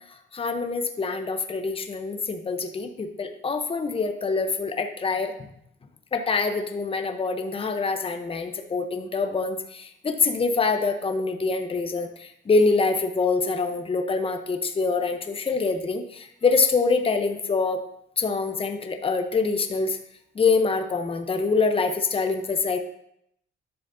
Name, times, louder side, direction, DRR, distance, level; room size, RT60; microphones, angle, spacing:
voice 1, 0.3-5.3 6.1-17.8 18.2-20.0 20.3-22.8, left 4 dB, 30° left, 6 dB, 0.8 m, -25 dB
10.5 x 7.1 x 2.7 m, 0.74 s
cardioid pair, 90°, 20 cm